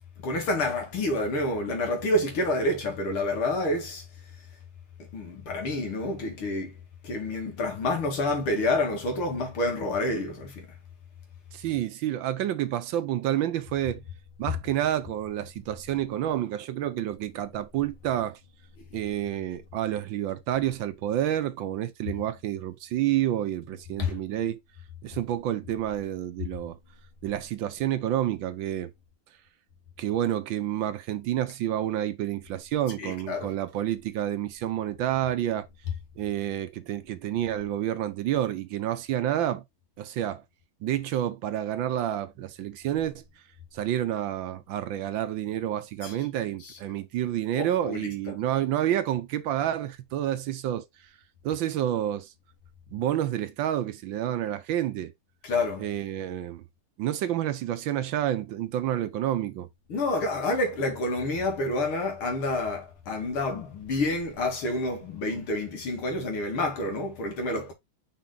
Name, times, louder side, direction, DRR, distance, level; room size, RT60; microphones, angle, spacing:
voice 1, 0.2-4.0 5.1-6.7 7.0-10.7 18.9-19.0 24.0-24.1 33.0-33.5 46.0-46.1 46.6-46.7 47.6-48.4 55.4-55.9 59.9-67.7, left 2 dB, 85° left, 3.0 m, -28 dB
voice 2, 11.5-14.0 14.4-18.4 18.9-24.6 25.0-26.8 27.2-28.9 30.0-35.7 36.2-39.6 40.0-40.4 40.8-43.2 43.7-50.8 51.4-52.3 52.9-55.1 55.8-56.6 57.0-59.7 65.3-65.4, right 11 dB, 70° right, 1.4 m, -29 dB
5.9 x 4.4 x 3.9 m
omnidirectional pair, 2.3 m